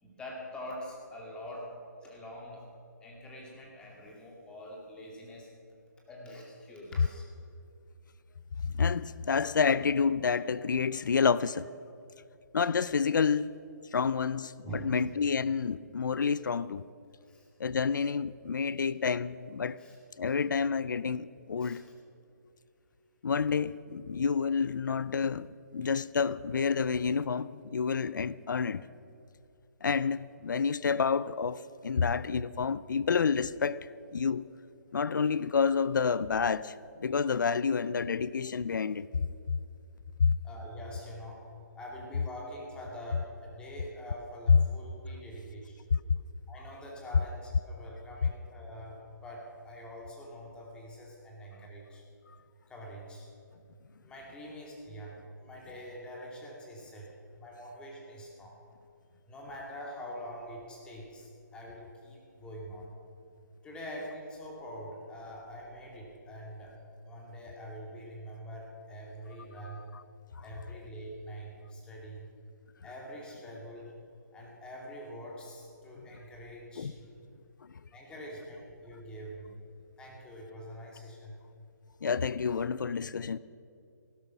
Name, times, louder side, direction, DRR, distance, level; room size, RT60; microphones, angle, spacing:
voice 1, 0.0-1.8 2.0-2.7 3.0-5.5 6.1-7.2 14.6-15.0 17.2-17.5 19.8-20.0 21.6-21.8 40.4-41.5 41.7-45.8 46.5-52.0 52.7-53.3 54.0-57.1 57.4-58.6 59.3-62.9 63.6-66.8 67.1-69.9 70.4-72.3 72.8-73.9 74.3-77.2 77.9-79.5 80.0-81.4, equal, 10° left, 2.3 m, -45 dB
voice 2, 8.7-11.7 12.5-13.6 13.9-16.9 17.6-19.8 20.2-21.8 23.2-25.5 25.7-28.8 29.8-34.4 34.9-39.1 40.2-40.3 44.5-44.6 76.8-76.9 82.0-83.4, left 5 dB, 90° left, 0.4 m, -29 dB
16.0 x 11.5 x 5.9 m
hypercardioid pair, 155°, 10 cm